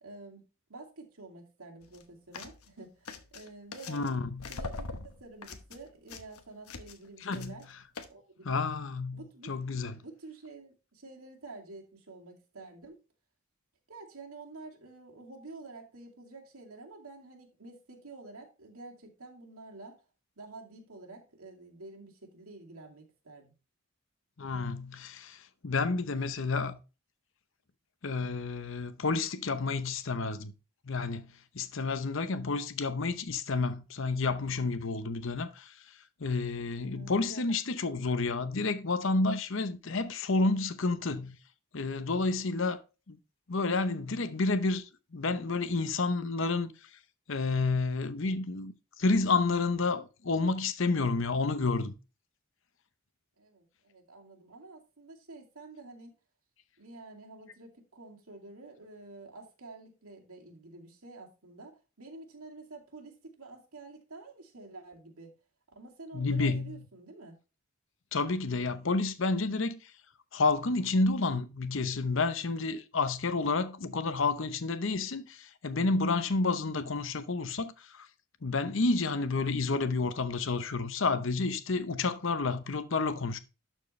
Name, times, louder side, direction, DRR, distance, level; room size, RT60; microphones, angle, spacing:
voice 1, 0.0-0.4 0.7-4.1 4.5-4.9 5.2-7.7 8.1-8.6 9.1-9.5 10.0-13.0 13.9-20.0 20.4-23.5 36.8-37.1 53.4-56.2 56.8-65.3 65.8-67.4, right 3 dB, 90° right, 2.4 m, -49 dB
sound 1, 1.8-2.0 2.3-2.7 3.1-4.1 4.4-7.1 7.3-7.6 8.0-8.1, left 3 dB, 90° left, 1.0 m, -42 dB
voice 2, 3.9-4.5 7.2-7.5 8.4-10.0 24.4-26.8 28.0-30.5 30.9-31.3 31.5-35.7 36.2-41.4 41.7-42.8 43.1-43.2 43.5-44.8 45.1-46.7 47.3-51.9 66.1-66.8 68.1-69.8 70.3-78.1 78.4-83.4, left 3 dB, 60° left, 0.8 m, -30 dB
12.0 x 4.5 x 3.2 m
head